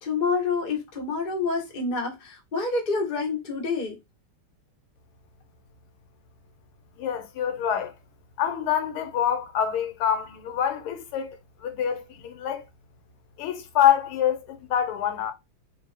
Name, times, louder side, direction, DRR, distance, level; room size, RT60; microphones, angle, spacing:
voice 1, 0.0-4.0, left 4 dB, 40° left, 0.6 m, -27 dB
voice 2, 7.0-7.9 8.4-12.6 13.4-15.3, left 9 dB, 85° left, 1.6 m, -26 dB
3.2 x 2.7 x 3.2 m
omnidirectional pair, 2.4 m